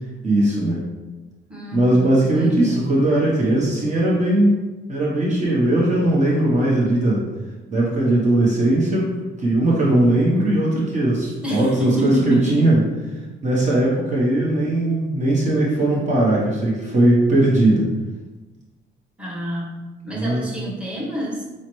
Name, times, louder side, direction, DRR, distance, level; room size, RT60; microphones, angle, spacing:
voice 1, 0.2-0.8 1.7-4.6 4.9-7.2 7.7-9.1 9.4-12.8 13.4-17.8 20.1-20.4, right 1 dB, 35° right, -5 dB, 0.9 m, -19 dB
voice 2, 1.5-3.0 11.4-12.7 13.2-13.4 19.2-19.8 20.0-21.4, right 1 dB, 5° right, -5 dB, 1.1 m, -28 dB
5.5 x 2.1 x 3.0 m, 1.2 s
cardioid pair, 90°, 20 cm